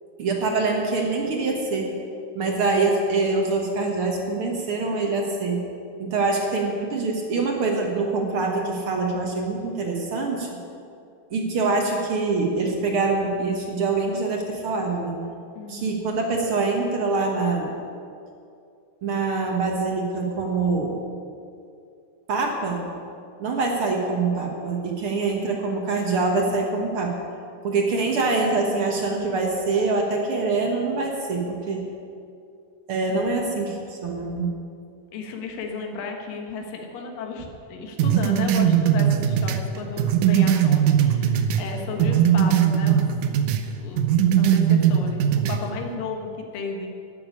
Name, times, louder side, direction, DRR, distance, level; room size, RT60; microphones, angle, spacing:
voice 1, 0.2-1.9 2.3-5.6 6.0-10.5 11.3-15.2 15.7-17.7 19.0-21.0 22.3-22.8 23.4-27.2 27.6-31.9 32.9-34.5, right 3 dB, 60° right, 1 dB, 1.4 m, -24 dB
voice 2, 15.6-16.0 33.1-33.6 35.1-43.2 43.7-44.0 44.4-45.2 45.5-46.9, left 3 dB, 70° left, 2 dB, 3.0 m, -34 dB
sound 1, 38.0-41.7 42.0-43.6 44.0-45.6, right 9 dB, 85° right, 1.6 m, -20 dB
12.5 x 7.4 x 9.6 m, 2.5 s
omnidirectional pair, 4.2 m